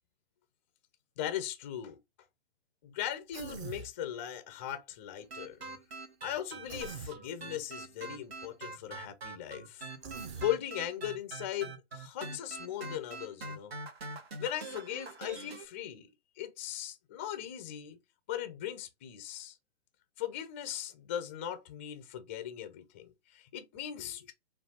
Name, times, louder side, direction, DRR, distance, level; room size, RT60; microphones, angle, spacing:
voice 1, 1.2-2.0 2.8-5.6 6.2-9.9 10.4-13.7 14.4-16.1 16.4-18.0 18.3-19.6 20.2-24.3, left 11 dB, 15° left, 0.4 m, -38 dB
Human voice, 3.3-3.9 6.7-7.2 10.0-10.5, right 6 dB, 25° right, 0.6 m, -42 dB
sound 1, 5.2-15.7, right 3 dB, 60° right, 1.4 m, -44 dB
5.4 x 2.3 x 4.1 m
figure-of-eight pair, 125°, 34 cm